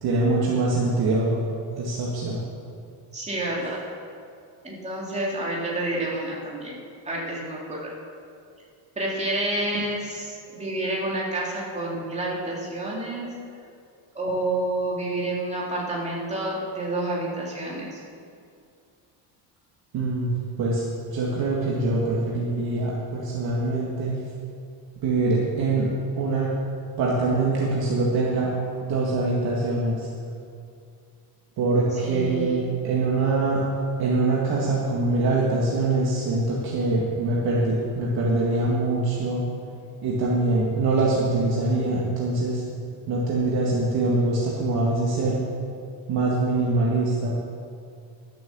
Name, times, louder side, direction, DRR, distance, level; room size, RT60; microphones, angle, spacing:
voice 1, 0.0-1.4 1.8-2.4 19.9-20.3 20.6-20.8 21.1-24.1 25.0-25.9 26.2-26.5 27.0-28.5 28.8-30.1 31.6-33.6 34.0-39.5 40.0-42.6 43.1-45.4 46.1-47.4, right 2 dB, 50° right, -5 dB, 2.0 m, -23 dB
voice 2, 3.1-3.8 4.6-6.8 7.0-8.0 9.0-13.3 14.1-18.0 31.9-32.7, right 1 dB, 15° right, -4 dB, 2.5 m, -29 dB
12.5 x 7.8 x 7.2 m, 2.4 s
cardioid pair, 160°, 48 cm